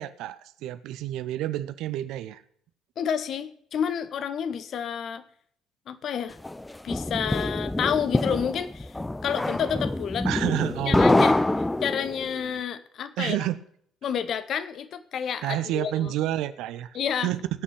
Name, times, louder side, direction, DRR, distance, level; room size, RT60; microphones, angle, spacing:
voice 1, 0.0-2.4 10.2-11.2 13.2-13.6 15.4-16.9 17.2-17.6, right 13 dB, 60° right, 13 dB, 0.7 m, -29 dB
voice 2, 3.0-5.2 5.9-6.4 6.8-8.9 9.2-10.3 10.9-11.4 11.8-13.4 14.0-16.1 16.9-17.3, left 8 dB, 50° left, 13 dB, 0.9 m, -29 dB
sound 1, 6.4-12.3, left 2 dB, 10° left, 0.6 m, -25 dB
18.0 x 6.3 x 5.6 m, 0.63 s
figure-of-eight pair, 50°, 0 cm